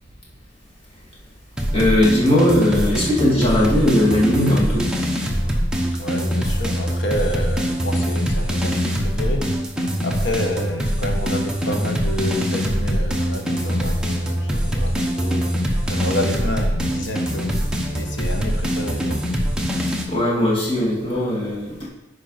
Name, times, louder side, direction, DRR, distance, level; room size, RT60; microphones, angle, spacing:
sound 1, 1.6-20.0, equal, 5° right, 0.9 m, -23 dB
voice 1, 1.7-4.9 20.1-21.9, left 1 dB, 30° left, -5 dB, 2.2 m, -18 dB
voice 2, 5.9-9.6 10.0-19.2, left 1 dB, 70° left, 4 dB, 1.1 m, -29 dB
9.7 x 5.0 x 4.1 m, 1.0 s
head